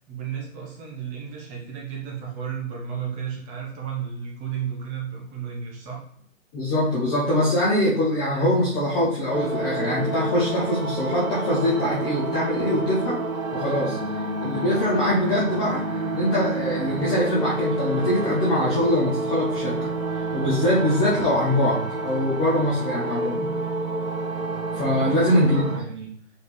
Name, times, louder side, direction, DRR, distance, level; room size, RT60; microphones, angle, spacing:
voice 1, 0.0-6.0 25.0-26.1, right 7 dB, 15° right, -1 dB, 1.2 m, -33 dB
voice 2, 6.5-13.2 13.5-14.0 14.4-19.9 20.3-23.4 24.7-25.6, left 1 dB, 10° left, -7 dB, 0.6 m, -23 dB
sound 1, 9.3-25.8, right 2 dB, 85° right, 2.4 m, -29 dB
6.5 x 4.5 x 3.3 m, 0.64 s
hypercardioid pair, 140°, 41 cm